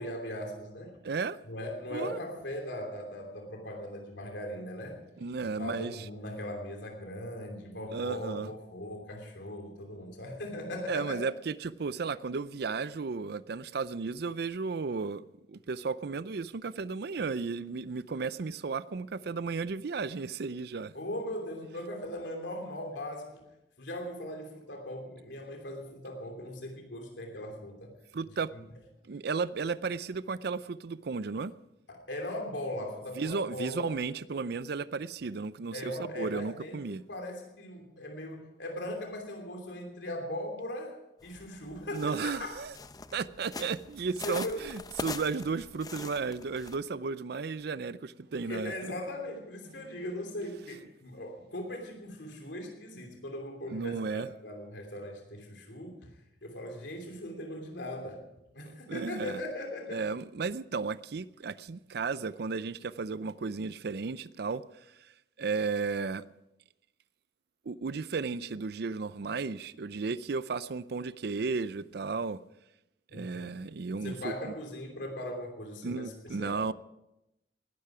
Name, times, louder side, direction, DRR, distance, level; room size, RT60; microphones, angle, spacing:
voice 1, 0.0-1.0 1.4-5.0 5.4-11.2 20.9-23.4 23.8-27.9 28.3-28.6 31.9-33.9 35.7-41.0 41.2-42.6 44.2-44.6 48.5-56.1 56.4-58.3 58.5-60.0 73.1-73.5 73.9-76.6, left 1 dB, 85° left, 3.0 m, -39 dB
voice 2, 1.0-1.4 1.9-2.2 5.2-5.9 7.9-8.5 10.9-20.9 28.1-28.5 29.1-31.5 33.2-37.0 41.9-42.7 43.1-48.9 49.8-49.9 53.7-54.3 58.9-59.4 59.9-64.6 65.4-66.2 67.7-72.4 73.1-74.5 75.8-76.7, right 4 dB, 60° right, 0.5 m, -34 dB
sound 1, 41.2-46.8, left 3 dB, 20° left, 0.6 m, -43 dB
19.0 x 12.5 x 4.9 m
head